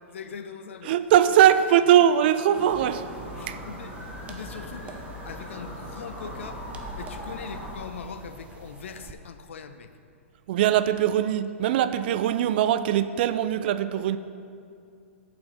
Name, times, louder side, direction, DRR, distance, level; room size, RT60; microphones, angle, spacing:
voice 1, 0.1-1.0 2.2-2.6 3.3-4.0 4.3-6.6 7.0-9.9, left 6 dB, 65° left, 9 dB, 0.7 m, -41 dB
voice 2, 0.8-3.0 3.5-3.6 10.5-14.2, right 10 dB, 50° right, 12 dB, 0.5 m, -21 dB
sound 1, 2.5-7.8, equal, ahead, 2.7 m, -40 dB
sound 2, 2.7-9.1, equal, 15° right, 0.8 m, -45 dB
8.7 x 7.0 x 5.4 m, 2.4 s
figure-of-eight pair, 110°, 7 cm